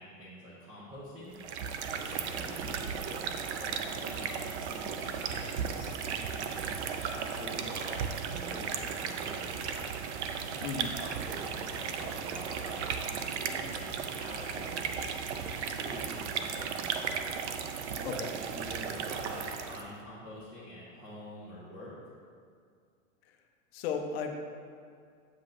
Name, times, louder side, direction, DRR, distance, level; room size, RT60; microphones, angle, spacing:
voice 1, 0.0-1.4 1.9-9.8 10.6-15.2 15.7-17.3 18.4-21.9, equal, 10° right, -7 dB, 0.6 m, -46 dB
sound 1, 1.3-19.9, right 6 dB, 55° right, 0.5 m, -35 dB
voice 2, 18.0-18.3 23.3-23.4 23.7-24.4, left 6 dB, 45° left, 3 dB, 0.7 m, -35 dB
7.7 x 7.6 x 2.5 m, 2.2 s
supercardioid pair, 165°, 41 cm